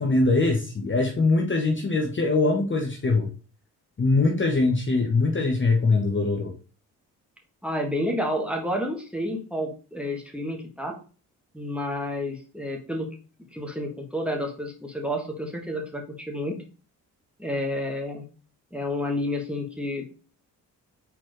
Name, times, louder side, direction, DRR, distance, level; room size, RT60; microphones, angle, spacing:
voice 1, 0.0-3.3 4.0-6.5, left 3 dB, 25° left, 1 dB, 0.9 m, -22 dB
voice 2, 7.6-11.0 11.5-13.1 13.5-16.6 17.4-18.2 18.7-20.0, left 1 dB, 5° right, 2 dB, 1.4 m, -30 dB
4.3 x 4.1 x 3.0 m, 0.37 s
hypercardioid pair, 40°, 45 cm